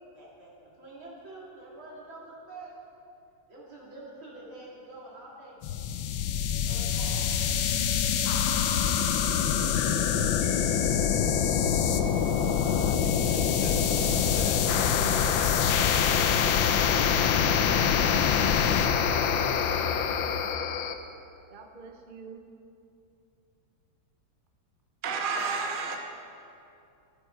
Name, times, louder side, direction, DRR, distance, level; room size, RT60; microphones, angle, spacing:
voice 1, 0.1-2.8 3.5-5.8 6.6-7.3 7.7-8.1 9.6-9.7 14.7-16.3 17.6-20.0, right 2 dB, 85° right, 3.7 m, -47 dB
sound 1, 5.6-20.9, left 8 dB, 80° left, 1.4 m, -25 dB
voice 2, 13.2-15.5, left 2 dB, 35° left, 1.0 m, -38 dB
voice 3, 21.5-22.4 25.0-26.0, right 4 dB, 40° right, 0.8 m, -33 dB
15.0 x 9.0 x 4.7 m
omnidirectional pair, 2.1 m